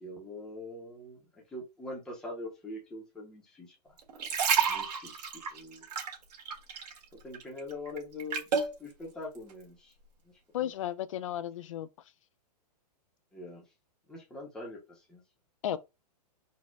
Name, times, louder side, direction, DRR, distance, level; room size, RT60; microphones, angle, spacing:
voice 1, 0.0-3.9 4.7-5.3 5.5-5.9 7.1-8.5 8.8-9.9 10.2-10.7 13.3-13.6 14.1-15.2, left 2 dB, 5° left, 0.6 m, -43 dB
sound 1, 4.0-7.0 7.3-8.7 9.3-9.5, right 6 dB, 75° right, 1.6 m, -30 dB
voice 2, 10.5-11.9 15.6-15.8, left 11 dB, 50° left, 0.4 m, -34 dB
4.2 x 2.1 x 4.4 m
hypercardioid pair, 170°, 21 cm